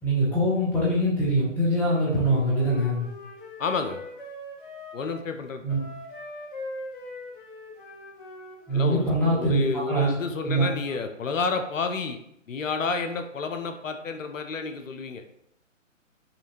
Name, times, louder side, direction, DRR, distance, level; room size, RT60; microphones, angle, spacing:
voice 1, 0.0-3.1 5.6-5.8 8.7-10.7, right 1 dB, 5° left, -8 dB, 0.8 m, -23 dB
Wind instrument woodwind instrument, 2.2-5.3 5.7-9.0, left 1 dB, 40° left, 0.9 m, -41 dB
voice 2, 3.6-4.0 4.9-5.8 8.7-12.2 12.5-15.2, left 4 dB, 75° left, 6 dB, 0.6 m, -30 dB
5.5 x 2.5 x 2.8 m, 0.75 s
figure-of-eight pair, 135°, 39 cm